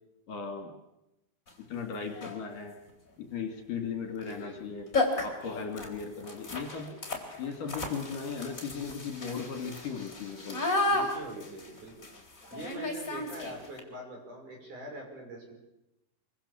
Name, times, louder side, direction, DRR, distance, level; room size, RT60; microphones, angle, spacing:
voice 1, 0.3-0.7 1.7-2.7 3.2-4.9 5.2-7.0 7.4-10.6, left 5 dB, 60° left, 4 dB, 3.9 m, -37 dB
sound 1, 1.5-1.6 2.1-2.5 4.2-4.4 4.6-4.7 4.9-13.8, left 2 dB, 20° left, 3.9 m, -34 dB
voice 2, 4.2-4.7 10.8-11.9 12.5-15.5, right 2 dB, 50° right, 1 dB, 7.5 m, -43 dB
25.5 x 24.0 x 7.2 m, 0.91 s
omnidirectional pair, 4.6 m